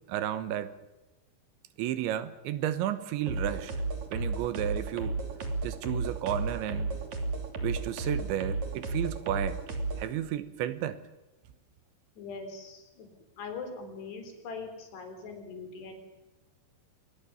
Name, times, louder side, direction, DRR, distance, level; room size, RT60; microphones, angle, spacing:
voice 1, 0.1-0.7 1.8-3.7 4.1-5.2 5.6-6.9 7.6-9.6 10.0-11.0, right 11 dB, 80° right, 13 dB, 3.5 m, -32 dB
sound 1, 3.3-10.1, right 3 dB, 45° right, 3.8 m, -33 dB
voice 2, 12.2-13.1 13.4-16.0, left 4 dB, 65° left, 6 dB, 5.9 m, -41 dB
25.5 x 20.5 x 7.2 m, 1.0 s
omnidirectional pair, 5.3 m